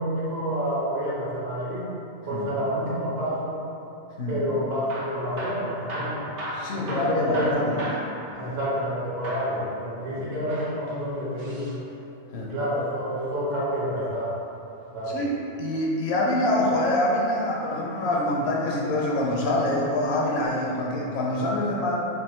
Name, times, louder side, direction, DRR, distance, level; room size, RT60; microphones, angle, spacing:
voice 1, 0.0-1.9 2.3-3.6 4.3-6.3 6.7-7.7 8.4-11.7 12.4-14.3 14.9-15.2, equal, 60° right, -8 dB, 1.3 m, -28 dB
Hammer / Drill, 4.7-9.0 9.2-9.6 10.4-11.8 13.5-14.8 16.5-16.9 17.7-18.5 19.2-19.4 19.7-19.8 20.4-20.5, equal, 85° right, 1.1 m, -37 dB
voice 2, 6.5-7.8 8.4-8.5 10.1-10.3 12.3-12.5 15.1-22.0, left 1 dB, 70° left, -3 dB, 0.8 m, -25 dB
3.6 x 2.3 x 4.3 m, 2.9 s
omnidirectional pair, 1.2 m